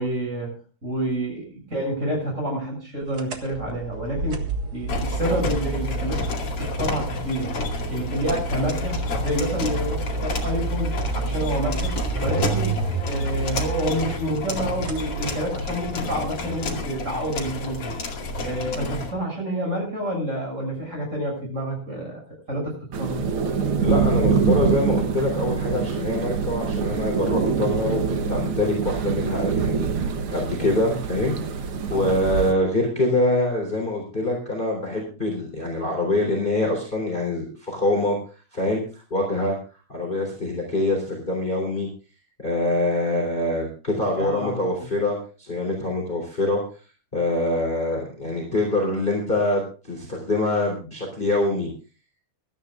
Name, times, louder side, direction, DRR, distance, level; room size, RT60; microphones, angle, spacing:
voice 1, 0.0-4.4 4.7-6.3 6.6-7.6 7.9-11.9 12.2-18.0 18.4-22.2 22.5-23.2 31.9-32.2 44.1-44.6, right 1 dB, 20° right, 0 dB, 7.4 m, -28 dB
sound 1, 3.1-16.0, right 3 dB, 40° right, 1.7 m, -30 dB
sound 2, 4.9-19.1, left 2 dB, 45° left, 3.0 m, -31 dB
sound 3, 22.9-32.5, right 6 dB, 60° right, 1.4 m, -25 dB
voice 2, 23.8-38.2 38.5-39.6 39.9-41.9 42.4-46.6 47.1-51.7, left 1 dB, 15° left, 0 dB, 3.4 m, -25 dB
24.0 x 13.0 x 2.4 m, 0.35 s
omnidirectional pair, 3.7 m